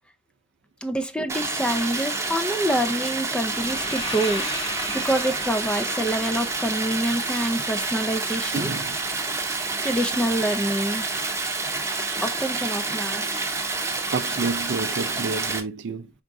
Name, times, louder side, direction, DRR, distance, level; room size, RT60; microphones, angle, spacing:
voice 1, 0.8-8.7 9.8-11.1 12.2-13.5, right 1 dB, 5° left, 0.4 m, -26 dB
Stream, 1.3-15.6, right 3 dB, 15° right, 0.7 m, -28 dB
sound 1, 3.5-7.5, left 2 dB, 25° left, 0.8 m, -36 dB
voice 2, 8.5-9.0 14.1-16.1, right 4 dB, 60° right, 0.4 m, -29 dB
4.9 x 3.6 x 2.5 m
head